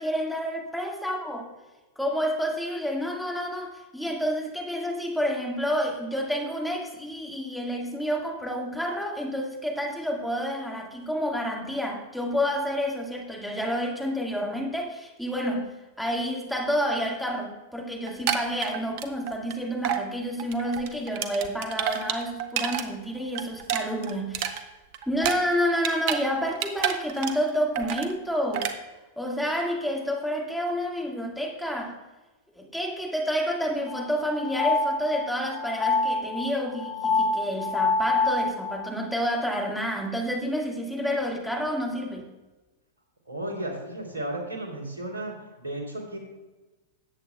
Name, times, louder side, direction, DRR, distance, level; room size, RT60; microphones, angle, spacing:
voice 1, 0.0-1.5 2.0-15.7 16.0-24.5 25.1-28.7 29.2-31.9 32.6-42.3, equal, ahead, 0 dB, 1.8 m, -29 dB
sound 1, 18.1-19.5 19.8-20.0 20.4-22.8 23.2-26.2 26.5-27.5 27.7-28.1 28.5-28.7, right 10 dB, 50° right, 0.9 m, -29 dB
sound 2, 33.9-39.0, left 3 dB, 25° left, 2.4 m, -26 dB
voice 2, 43.3-46.2, right 1 dB, 80° right, 1 dB, 3.0 m, -34 dB
18.5 x 8.2 x 2.3 m, 1.1 s
figure-of-eight pair, 95°, 0 cm